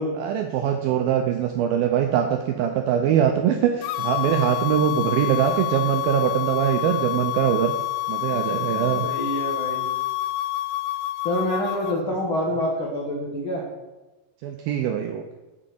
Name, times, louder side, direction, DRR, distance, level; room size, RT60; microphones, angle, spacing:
voice 1, 0.1-7.7 8.1-9.1 11.9-12.2 14.4-15.2, right 9 dB, 85° right, 6 dB, 2.1 m, -22 dB
sound 1, 3.8-12.0, left 17 dB, 90° left, 2.8 m, -28 dB
voice 2, 4.7-5.1 9.0-9.9 11.2-13.6, left 1 dB, 75° left, -2 dB, 1.2 m, -27 dB
7.7 x 7.4 x 7.8 m, 1.1 s
omnidirectional pair, 4.9 m